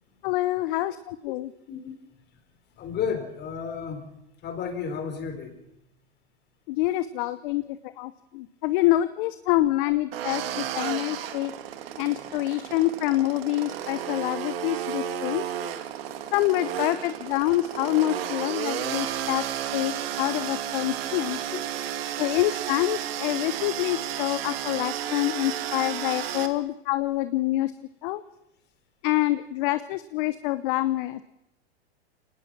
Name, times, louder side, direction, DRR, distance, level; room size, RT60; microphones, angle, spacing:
voice 1, 0.2-1.5 6.7-11.5 12.0-15.4 16.3-19.4 19.7-21.4 22.2-27.7 28.0-28.2 29.0-31.2, left 16 dB, 50° left, 13 dB, 0.9 m, -26 dB
voice 2, 2.8-4.1 4.4-5.6 21.5-21.6, left 7 dB, 30° left, 8 dB, 3.9 m, -32 dB
sound 1, 10.1-26.5, right 10 dB, 65° right, 2.1 m, -32 dB
23.0 x 19.0 x 6.1 m, 0.88 s
hypercardioid pair, 115°, 32 cm